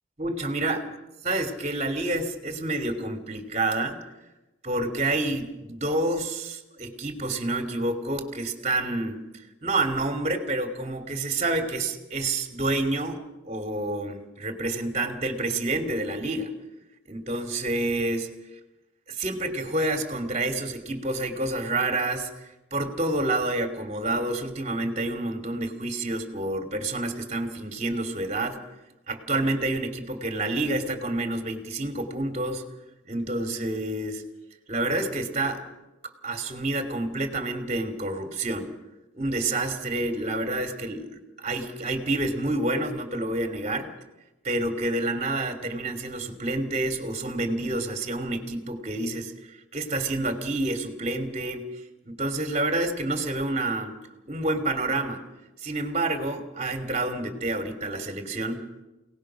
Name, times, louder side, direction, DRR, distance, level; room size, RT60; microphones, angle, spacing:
voice 1, 0.2-0.9 1.2-4.0 4.6-9.2 9.6-16.5 17.1-18.3 19.1-22.3 22.7-28.6 29.1-32.6 33.1-34.2 34.7-35.6 36.2-38.7 39.1-43.9 44.4-49.3 49.7-51.6 52.1-53.9 54.3-55.2 55.6-58.6, right 2 dB, 35° right, 6 dB, 2.8 m, -28 dB
28.5 x 18.5 x 6.3 m, 1.0 s
head